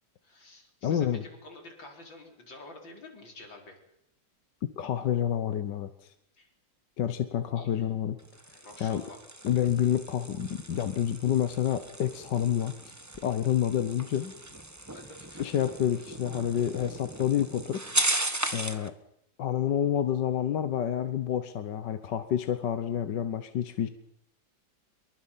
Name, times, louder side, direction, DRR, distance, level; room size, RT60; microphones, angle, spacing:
voice 1, 0.2-3.8 6.3-6.5 7.6-7.7 8.6-9.2 13.7-13.8 14.9-15.4, left 2 dB, 85° left, 2 dB, 5.2 m, -49 dB
voice 2, 0.8-1.2 4.8-6.1 7.0-8.2 8.8-9.0 9.4-12.8 13.2-14.3 15.4-17.8 18.5-18.9 19.4-23.9, left 10 dB, 70° left, 10 dB, 1.7 m, -28 dB
sound 1, 8.2-18.9, right 1 dB, 10° right, 1.1 m, -36 dB
27.0 x 23.5 x 5.7 m, 0.74 s
omnidirectional pair, 2.0 m